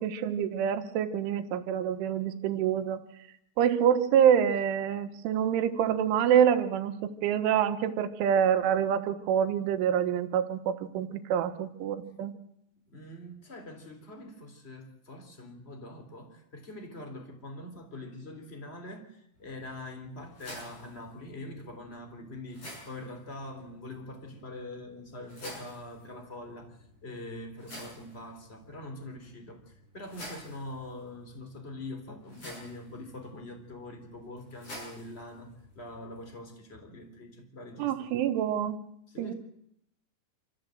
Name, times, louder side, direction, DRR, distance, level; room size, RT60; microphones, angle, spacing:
voice 1, 0.0-3.0 3.6-12.3 37.8-38.8 39.2-39.3, right 9 dB, 90° right, 8 dB, 3.6 m, -26 dB
voice 2, 12.9-35.5 35.7-38.1 39.1-39.3, left 1 dB, 15° left, 5 dB, 2.6 m, -44 dB
sound 1, 19.3-36.3, equal, 30° left, 8.3 m, -51 dB
26.5 x 14.5 x 7.7 m, 0.79 s
omnidirectional pair, 5.4 m